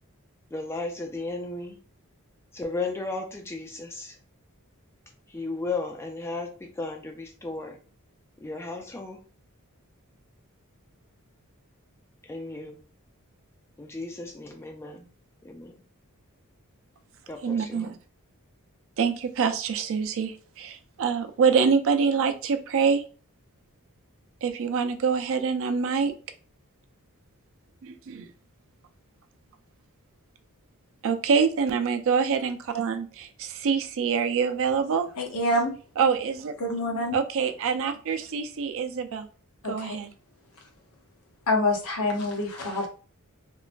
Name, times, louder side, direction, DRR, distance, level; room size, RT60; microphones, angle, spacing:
voice 1, 0.5-1.8 2.5-4.2 5.3-7.8 8.4-9.2 12.3-12.8 13.8-15.1 15.4-15.7 17.3-17.9, left 3 dB, 10° left, 3 dB, 0.3 m, -34 dB
voice 2, 17.4-18.0 19.0-23.0 24.4-26.1 27.8-28.3 31.0-35.1 36.0-36.5 37.1-39.3 39.7-40.1, right 6 dB, 65° right, 7 dB, 0.4 m, -25 dB
voice 3, 35.2-35.7 36.6-37.2 39.6-40.0 41.5-42.9, left 1 dB, 70° left, 2 dB, 0.8 m, -26 dB
3.0 x 2.2 x 2.4 m, 0.38 s
head